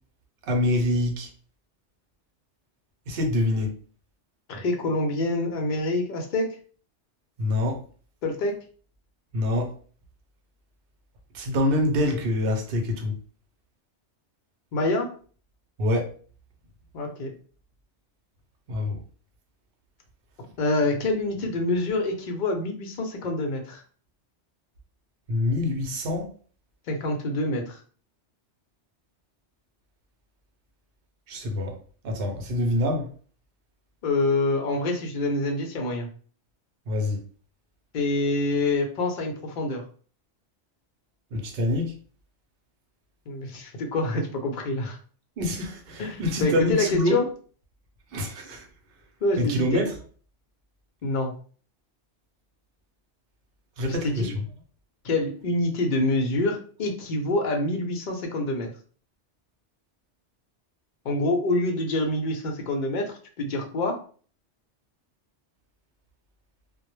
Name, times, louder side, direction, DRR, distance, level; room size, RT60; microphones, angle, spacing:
voice 1, 0.4-1.3 3.1-3.7 7.4-7.8 9.3-9.7 11.3-13.2 15.8-16.1 18.7-19.0 25.3-26.3 31.3-31.8 32.0-33.1 36.9-37.2 41.3-41.9 45.4-47.2 48.1-48.7 49.4-49.9 53.8-54.4, left 1 dB, 60° right, 3 dB, 0.7 m, -25 dB
voice 2, 4.5-6.6 8.2-8.6 14.7-15.1 16.9-17.3 20.6-23.8 26.9-27.8 34.0-36.1 37.9-39.8 43.3-45.0 46.0-47.2 49.2-49.9 51.0-51.3 53.9-54.3 55.0-58.7 61.0-64.0, left 2 dB, 55° left, 2 dB, 0.6 m, -26 dB
2.1 x 2.0 x 3.0 m, 0.42 s
omnidirectional pair, 1.2 m